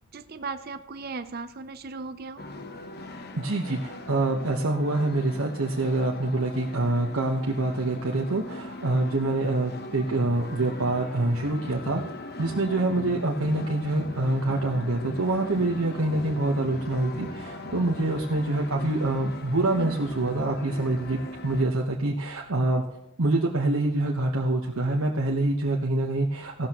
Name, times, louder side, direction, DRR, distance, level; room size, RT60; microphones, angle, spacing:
voice 1, 0.1-2.4 19.8-20.0, right 4 dB, 45° right, 10 dB, 0.6 m, -37 dB
sound 1, 2.4-21.6, left 1 dB, 45° left, 1.0 m, -39 dB
voice 2, 3.4-12.0 12.4-22.8 23.2-26.7, right 2 dB, 75° right, 0 dB, 1.2 m, -26 dB
16.0 x 12.5 x 3.0 m, 0.79 s
head